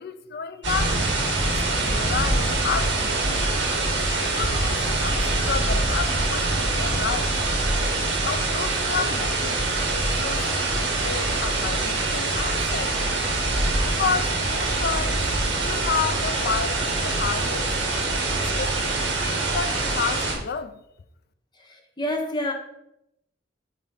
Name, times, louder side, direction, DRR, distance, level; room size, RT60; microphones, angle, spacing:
voice 1, 0.0-3.5 4.2-7.4 8.2-13.2 13.8-17.7 18.3-18.7 19.5-20.8, left 6 dB, 55° left, 0.5 m, -31 dB
sound 1, 0.6-20.3, right 2 dB, 70° right, 1.8 m, -24 dB
voice 2, 21.7-22.5, left 1 dB, 25° left, 1.0 m, -28 dB
7.1 x 3.1 x 5.5 m
head